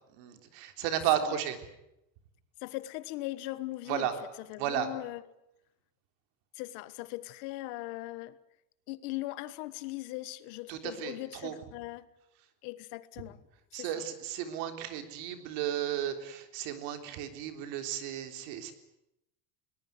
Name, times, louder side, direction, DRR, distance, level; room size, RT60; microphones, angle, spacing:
voice 1, 0.1-1.6 3.9-4.1 4.6-4.9 10.7-11.6 13.7-18.7, right 11 dB, 80° right, 3.6 m, -33 dB
voice 2, 2.6-4.1 4.5-5.2 6.5-8.4 8.9-12.1 12.6-13.4 13.7-13.9, left 18 dB, 80° left, 1.6 m, -39 dB
22.0 x 19.5 x 9.6 m
cardioid pair, 145°, 42 cm